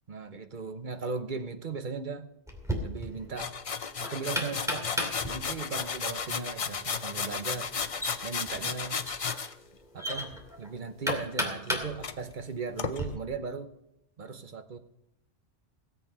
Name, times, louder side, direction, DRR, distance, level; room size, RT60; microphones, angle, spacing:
voice 1, 0.1-2.3 2.8-3.5 4.0-4.9 5.3-7.7 8.2-9.0 9.9-13.7 14.2-14.8, right 4 dB, 45° right, 8 dB, 1.0 m, -37 dB
Knock, 2.5-13.1, equal, 5° right, 2.6 m, -37 dB
sound 1, 3.4-9.5 11.1-11.7 12.0-12.1 12.8-13.0, left 6 dB, 40° left, 0.5 m, -34 dB
17.5 x 8.2 x 5.5 m, 0.84 s
omnidirectional pair, 1.2 m